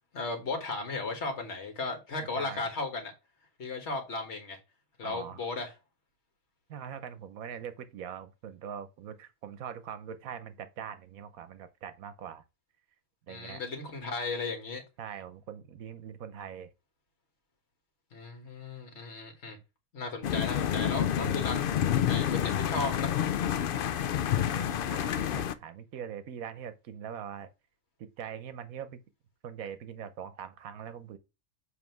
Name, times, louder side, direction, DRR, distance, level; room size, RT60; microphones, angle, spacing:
voice 1, 0.1-3.1 3.6-4.6 5.0-5.7 13.3-14.8 18.1-19.6 19.9-21.7 22.1-23.1, left 3 dB, 50° left, 1.7 m, -35 dB
voice 2, 5.0-5.4 6.7-12.4 13.3-13.6 15.0-16.7 24.3-27.5 28.2-29.0 29.4-31.2, right 8 dB, 75° right, 1.2 m, -42 dB
sound 1, 20.2-25.5, left 10 dB, 80° left, 0.4 m, -28 dB
7.4 x 3.4 x 4.6 m
omnidirectional pair, 1.5 m